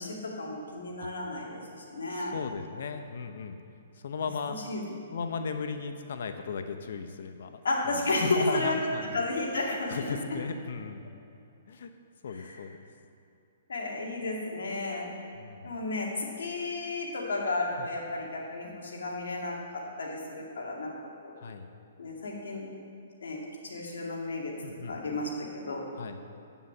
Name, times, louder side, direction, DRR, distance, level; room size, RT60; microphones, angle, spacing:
voice 1, 0.0-2.3 4.5-4.8 7.6-8.8 9.1-10.0 12.3-12.6 13.7-15.1 15.6-19.6 20.0-20.9 21.2-21.3 22.0-22.7 23.2-24.5 24.9-25.8, left 2 dB, 85° left, -2 dB, 2.4 m, -33 dB
voice 2, 2.1-3.6 4.0-4.6 5.1-7.6 7.8-9.2 9.6-11.1 11.7-11.9 12.2-12.8 15.3-15.7 21.4-21.7 24.6-25.0 25.9-26.2, left 5 dB, 70° left, 8 dB, 0.7 m, -36 dB
8.4 x 7.1 x 7.2 m, 2.7 s
hypercardioid pair, 145°, 0 cm